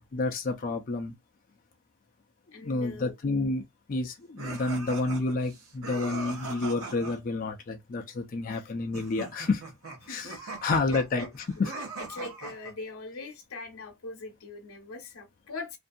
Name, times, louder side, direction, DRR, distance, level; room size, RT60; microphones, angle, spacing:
voice 1, 0.1-1.1 2.6-3.6 3.9-9.6 10.1-10.3 10.6-11.3 11.6-11.7, left 3 dB, 40° left, 0.4 m, -29 dB
voice 2, 2.5-3.2 8.5-8.7 10.0-10.2 10.6-11.2 11.5-11.7 12.1-15.8, left 3 dB, 75° left, 0.8 m, -42 dB
sound 1, 4.4-7.2 8.9-12.7, right 3 dB, 70° right, 1.0 m, -40 dB
2.6 x 2.3 x 2.5 m
head